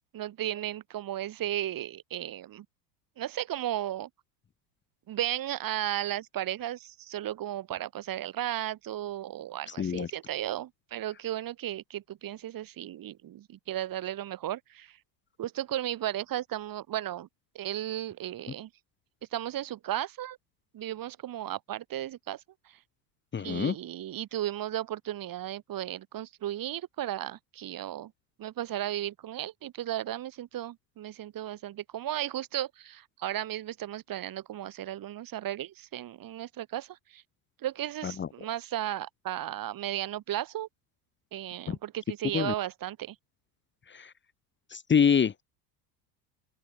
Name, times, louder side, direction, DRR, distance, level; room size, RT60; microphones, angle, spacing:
voice 1, 0.1-2.7 3.2-4.1 5.1-15.0 15.4-17.3 17.5-18.7 19.3-20.4 20.7-22.8 23.4-28.1 28.4-37.2 37.6-40.7 41.3-43.2, right 12 dB, 45° right, 5.6 m, -35 dB
voice 2, 9.8-10.1 23.3-23.7 38.2-38.3 41.7-41.8 42.3-42.5 43.9-44.1 44.7-45.4, left 7 dB, 25° left, 1.7 m, -25 dB
open air
supercardioid pair, 105°, 49 cm